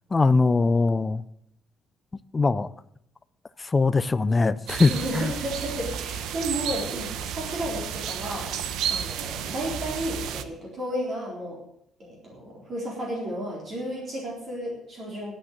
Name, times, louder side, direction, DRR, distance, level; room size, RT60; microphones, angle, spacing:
voice 1, 0.1-1.2 2.3-2.7 3.6-5.3, left 3 dB, 15° left, 14 dB, 0.4 m, -21 dB
sound 1, 4.7-10.4, right 8 dB, 75° right, 0.8 m, -32 dB
voice 2, 4.9-8.6 8.9-11.6 12.0-15.3, right 1 dB, 35° right, -3 dB, 3.9 m, -33 dB
12.0 x 8.8 x 7.3 m, 0.72 s
cardioid pair, 170°, 0 cm